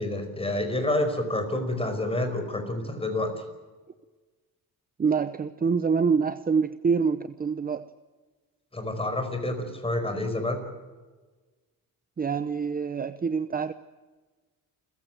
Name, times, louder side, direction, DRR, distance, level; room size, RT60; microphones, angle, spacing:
voice 1, 0.0-3.3 8.7-10.6, left 1 dB, 15° left, 7 dB, 5.2 m, -28 dB
voice 2, 5.0-7.9 12.2-13.7, right 5 dB, 25° right, 12 dB, 0.8 m, -26 dB
29.0 x 15.5 x 9.2 m, 1.3 s
cardioid pair, 135°, 37 cm